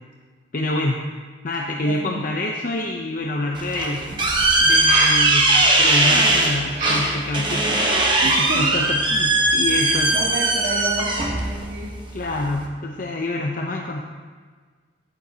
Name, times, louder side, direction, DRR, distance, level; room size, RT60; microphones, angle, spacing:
voice 1, 0.5-1.0 1.4-4.1 4.6-8.0 8.4-10.1 12.1-14.0, left 2 dB, 45° left, 0 dB, 0.6 m, -26 dB
voice 2, 1.8-2.2 8.2-8.7 9.7-12.0, right 2 dB, 80° right, -4 dB, 2.6 m, -30 dB
sound 1, 3.0-3.1 4.7-5.2 6.7-7.3 7.7-8.3, right 1 dB, 40° right, 2.9 m, -25 dB
sound 2, 3.6-12.7, right 2 dB, 25° right, 1.0 m, -20 dB
12.0 x 9.2 x 2.8 m, 1.5 s
head